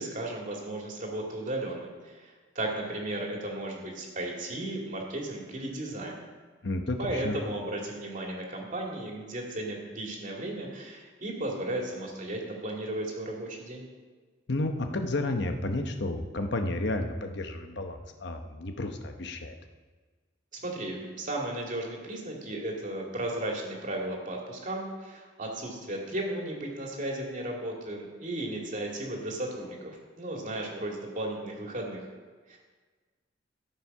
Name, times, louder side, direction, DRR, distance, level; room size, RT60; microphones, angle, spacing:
voice 1, 0.0-6.2 7.0-13.8 20.5-32.1 32.5-32.6, right 1 dB, 45° right, -1 dB, 2.4 m, -35 dB
voice 2, 6.6-7.4 14.5-19.5, left 2 dB, 65° left, 5 dB, 0.9 m, -31 dB
13.5 x 7.4 x 5.5 m, 1.4 s
head